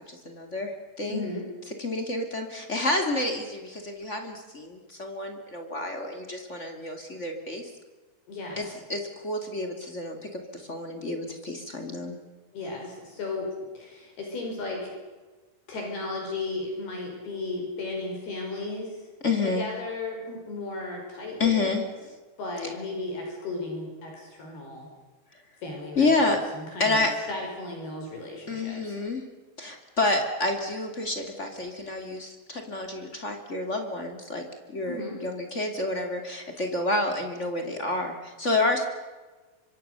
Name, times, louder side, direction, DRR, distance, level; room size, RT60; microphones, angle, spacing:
voice 1, 0.1-1.2 1.8-7.7 8.5-12.2 19.2-19.7 21.4-21.8 25.9-26.4 26.8-27.1 28.5-29.2 29.6-38.9, left 2 dB, 25° left, 4 dB, 1.5 m, -29 dB
voice 2, 1.1-1.4 8.3-8.7 12.5-14.9 15.7-19.1 19.4-21.7 22.4-24.9 25.6-29.0 34.8-35.2, left 2 dB, 55° left, 1 dB, 7.2 m, -35 dB
25.5 x 24.5 x 6.9 m, 1.3 s
omnidirectional pair, 5.5 m